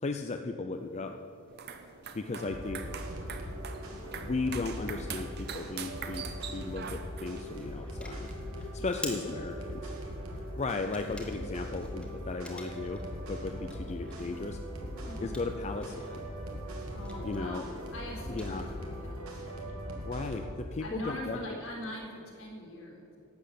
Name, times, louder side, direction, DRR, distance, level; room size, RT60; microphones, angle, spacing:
voice 1, 0.0-1.2 2.1-2.8 4.0-8.3 8.6-9.9 10.6-13.0 13.3-14.6 15.2-16.3 17.2-17.6 18.3-18.7 20.0-21.4, left 3 dB, 30° left, 6 dB, 0.5 m, -36 dB
sound 1, 0.7-19.1, left 1 dB, 5° left, 1.6 m, -52 dB
sound 2, 1.5-7.5, right 6 dB, 50° right, 0.9 m, -43 dB
sound 3, 2.3-20.5, equal, 85° right, 2.3 m, -40 dB
voice 2, 8.8-9.3 15.0-15.4 16.9-19.8 20.8-23.2, left 1 dB, 70° left, -1 dB, 3.5 m, -42 dB
12.0 x 7.9 x 8.3 m, 2.9 s
head